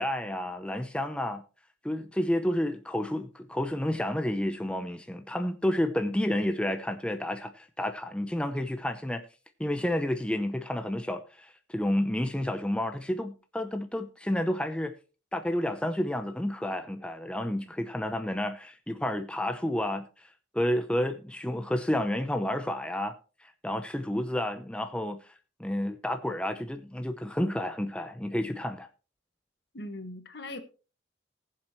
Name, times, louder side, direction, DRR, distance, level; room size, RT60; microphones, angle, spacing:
voice 1, 0.0-1.4 1.8-9.2 9.6-14.9 15.3-20.3 20.5-23.1 23.4-25.3 25.6-28.9, left 1 dB, 5° left, 0.6 m, -30 dB
voice 2, 29.7-30.6, left 1 dB, 60° left, 1.5 m, -39 dB
20.0 x 7.4 x 3.0 m
head